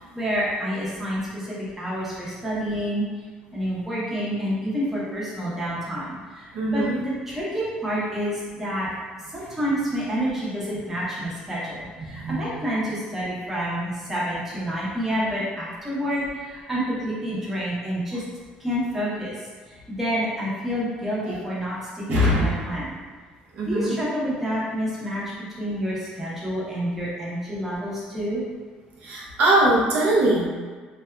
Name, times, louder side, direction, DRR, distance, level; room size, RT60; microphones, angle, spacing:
voice 1, 0.1-3.1 3.5-6.5 6.7-8.9 9.3-18.2 18.6-19.3 19.9-22.9 23.7-25.2 25.6-28.4, equal, 10° right, -8 dB, 0.7 m, -28 dB
voice 2, 6.5-7.0 12.1-12.5 21.2-21.4 22.1-22.7 23.6-23.9 29.0-30.5, right 1 dB, 65° right, -5 dB, 0.5 m, -21 dB
2.6 x 2.2 x 2.2 m, 1.5 s
cardioid pair, 135°, 3 cm